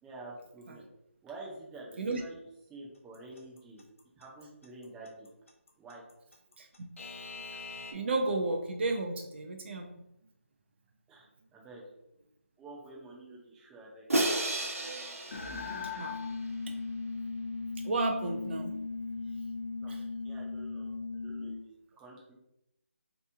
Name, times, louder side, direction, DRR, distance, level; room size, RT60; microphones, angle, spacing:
voice 1, 0.0-0.8 1.2-2.4 2.7-3.8 4.2-5.3 5.8-6.0 11.1-11.3 11.5-11.8 12.6-14.1 19.8-19.9 20.2-20.9 21.2-22.3, right 2 dB, 5° right, -4 dB, 0.6 m, -48 dB
Alarm / Clock, 3.1-7.9, left 4 dB, 70° left, 0.9 m, -44 dB
voice 2, 7.9-9.9 15.2-15.3 16.0-16.2 16.7-16.8 17.8-18.8 19.9-20.0, right 3 dB, 50° right, 2 dB, 0.5 m, -33 dB
Crash cymbal, 14.1-16.3, right 1 dB, 85° right, 0.9 m, -32 dB
sound 1, 15.3-21.7, left 4 dB, 50° left, 0.5 m, -37 dB
3.4 x 3.0 x 3.3 m, 0.83 s
figure-of-eight pair, 165°, 8 cm